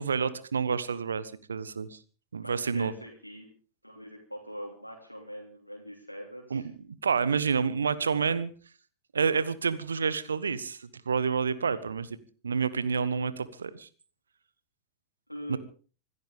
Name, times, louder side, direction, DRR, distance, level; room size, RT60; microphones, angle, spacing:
voice 1, 0.0-2.0 2.3-2.9 6.5-6.7 7.0-8.5 9.1-12.2 12.4-13.9 15.5-15.6, right 5 dB, 70° right, 16 dB, 1.3 m, -29 dB
voice 2, 2.4-3.5 3.8-6.7 11.5-11.8 15.3-15.6, equal, 90° left, -2 dB, 3.4 m, -43 dB
26.0 x 14.0 x 3.5 m, 0.39 s
figure-of-eight pair, 90°, 0 cm